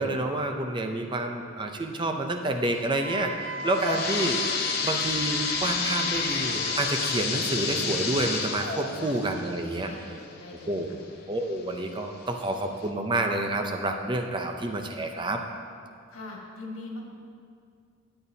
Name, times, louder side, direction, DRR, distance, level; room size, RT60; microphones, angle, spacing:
voice 1, 0.0-4.4 4.8-9.9 10.7-10.9 11.3-15.4, right 2 dB, 25° right, 4 dB, 0.5 m, -29 dB
Wind instrument woodwind instrument, 3.0-7.1, right 1 dB, 70° right, 1.6 m, -38 dB
sound 1, 3.4-11.0 11.5-11.6 12.3-12.4 12.9-13.0, left 5 dB, 50° left, 0.8 m, -30 dB
voice 2, 8.9-9.2 9.8-10.8 16.1-17.1, left 2 dB, 90° left, -1 dB, 1.7 m, -41 dB
12.5 x 8.8 x 2.7 m, 2.2 s
head